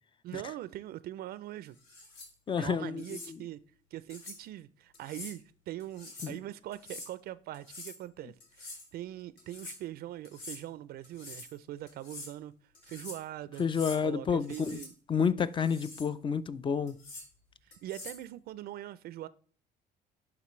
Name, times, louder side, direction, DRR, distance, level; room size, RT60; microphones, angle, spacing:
voice 1, 0.2-1.8 2.6-3.6 3.9-12.5 12.8-13.6 14.0-14.9 17.6-19.3, right 13 dB, 65° right, 0.4 m, -42 dB
sound 1, 1.8-2.3 3.0-3.3 4.1-4.4 4.9-5.4 5.8-6.4 6.7-7.1 7.5-8.0 8.4-8.9 9.4-9.8 10.2-10.6 11.0-11.5 11.9-12.3 12.7-13.2 13.6-14.0 14.4-14.9 15.4-16.1 16.9-17.3 17.7-18.2, left 2 dB, 85° left, 2.7 m, -46 dB
voice 2, 2.5-3.4 6.2-6.4 13.6-14.8 15.1-17.0, left 6 dB, 30° left, 0.4 m, -30 dB
11.0 x 3.9 x 3.1 m
cardioid pair, 110°, 17 cm